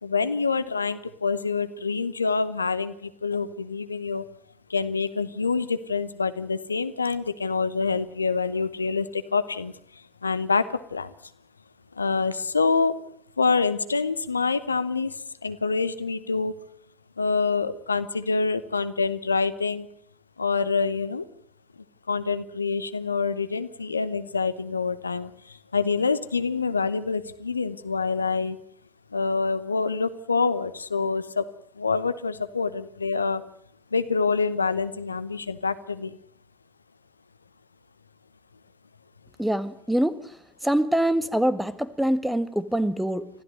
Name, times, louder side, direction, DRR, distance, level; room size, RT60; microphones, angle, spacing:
voice 1, 0.0-4.2 4.7-9.7 10.2-11.1 12.0-13.0 13.4-16.5 17.2-19.9 20.4-21.3 22.1-28.6 29.1-31.5 31.8-33.4 33.9-36.2, left 4 dB, 85° left, 13 dB, 1.0 m, -26 dB
voice 2, 39.4-40.4 40.6-43.3, right 1 dB, 5° right, 15 dB, 1.7 m, -24 dB
25.0 x 16.0 x 9.4 m, 0.64 s
figure-of-eight pair, 65°, 0 cm